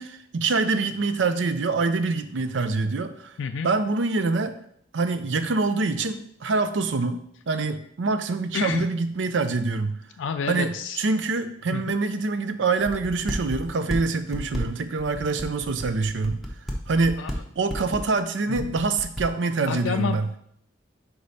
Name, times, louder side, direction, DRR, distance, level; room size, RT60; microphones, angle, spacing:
voice 1, 0.0-3.4 3.6-4.5 4.9-7.2 7.5-10.0 10.5-16.4 16.9-17.3 17.6-20.3, right 3 dB, 75° right, 10 dB, 0.5 m, -25 dB
voice 2, 3.4-3.7 8.5-8.9 10.2-11.0 11.7-11.8 17.2-17.3 18.5-18.7 19.7-20.4, left 6 dB, 80° left, 7 dB, 0.3 m, -29 dB
sound 1, 12.8-14.0 14.3-17.4 17.7-18.2 18.5-19.2, equal, ahead, 0.8 m, -32 dB
5.1 x 4.6 x 4.1 m, 0.69 s
head